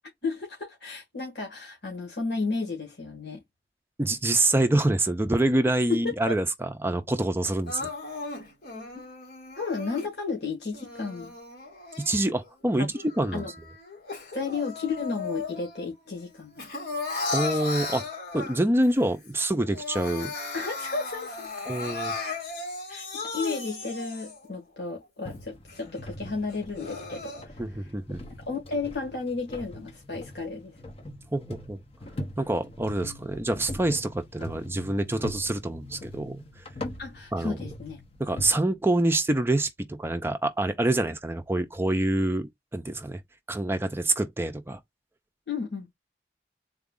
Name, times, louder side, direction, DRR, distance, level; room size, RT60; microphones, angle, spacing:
voice 1, 0.2-3.4 5.9-6.3 8.9-9.0 9.5-11.3 12.8-12.9 13.3-13.5 14.3-16.6 20.5-21.5 22.9-27.9 28.5-30.7 37.0-38.0 45.5-45.9, left 4 dB, 75° left, 1.6 m, -33 dB
voice 2, 4.0-7.9 12.0-13.4 17.3-18.1 18.3-20.3 21.7-22.1 27.6-28.2 31.3-31.8 32.4-36.4 37.3-37.6 38.2-43.2 43.5-44.8, right 1 dB, 15° right, 0.4 m, -26 dB
Crying sobbing, 7.7-10.1 10.7-12.5 12.9-15.9 16.2-18.8 19.3-19.4 19.6-24.5 25.0-25.1 25.7-25.8 26.5-27.4, left 3 dB, 60° left, 2.0 m, -36 dB
sound 1, 25.2-38.5, left 1 dB, 35° left, 0.7 m, -41 dB
3.9 x 2.3 x 3.6 m
head